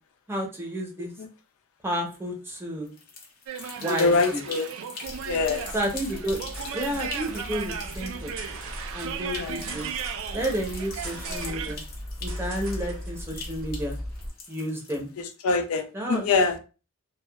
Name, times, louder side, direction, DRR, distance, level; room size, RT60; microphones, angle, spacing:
voice 1, 0.3-1.1 1.8-2.9 3.8-4.4 5.7-6.4 6.7-8.3 8.9-9.9 10.3-11.8 12.2-14.0 14.5-15.1 15.9-16.3, right 1 dB, 10° right, 0.6 m, -31 dB
sound 1, 2.9-15.3, left 4 dB, 45° left, 0.6 m, -43 dB
sound 2, 3.5-11.7, right 7 dB, 70° right, 0.3 m, -36 dB
voice 2, 3.9-4.7 5.2-5.6 9.4-9.6 15.2-16.6, left 4 dB, 90° left, 0.4 m, -24 dB
sound 3, 5.0-14.3, equal, 90° right, 1.1 m, -38 dB
2.7 x 2.2 x 2.2 m
head